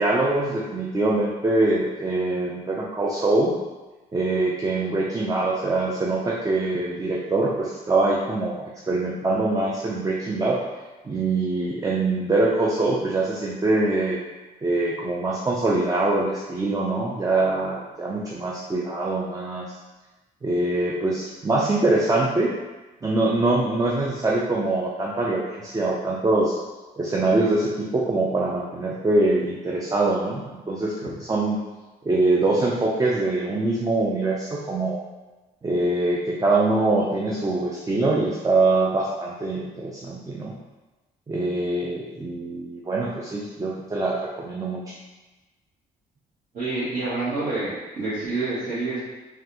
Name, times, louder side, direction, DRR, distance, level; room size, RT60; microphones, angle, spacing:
voice 1, 0.0-3.6 4.1-10.6 11.0-14.2 14.6-19.7 20.4-22.5 23.0-26.6 27.0-31.6 32.0-35.0 35.6-40.5 41.3-44.9, right 2 dB, 20° right, -3 dB, 0.4 m, -23 dB
voice 2, 46.5-49.0, right 3 dB, 50° right, -13 dB, 1.3 m, -27 dB
3.2 x 2.4 x 2.9 m, 1.1 s
cardioid pair, 80°, 17 cm